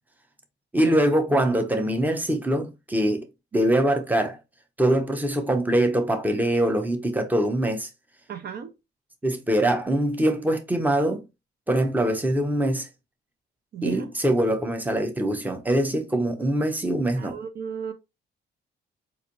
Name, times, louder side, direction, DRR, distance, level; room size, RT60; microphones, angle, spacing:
voice 1, 0.7-3.2 3.5-4.4 4.8-7.9 9.2-11.2 11.7-12.9 13.8-17.4, right 1 dB, 10° right, 0.8 m, -23 dB
voice 2, 8.3-8.7 13.7-14.1 17.2-17.9, right 8 dB, 55° right, 0.6 m, -34 dB
4.0 x 2.6 x 2.9 m
cardioid pair, 90°, 20 cm